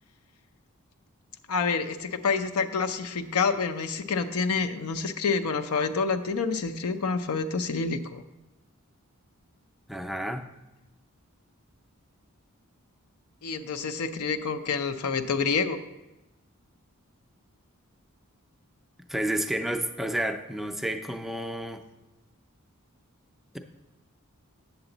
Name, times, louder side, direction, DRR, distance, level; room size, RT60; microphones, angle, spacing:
voice 1, 1.5-8.2 13.4-15.8, left 5 dB, 90° left, 9 dB, 0.5 m, -28 dB
voice 2, 9.9-10.5 19.1-21.8, right 1 dB, ahead, 5 dB, 0.4 m, -30 dB
7.9 x 6.8 x 3.9 m, 1.0 s
head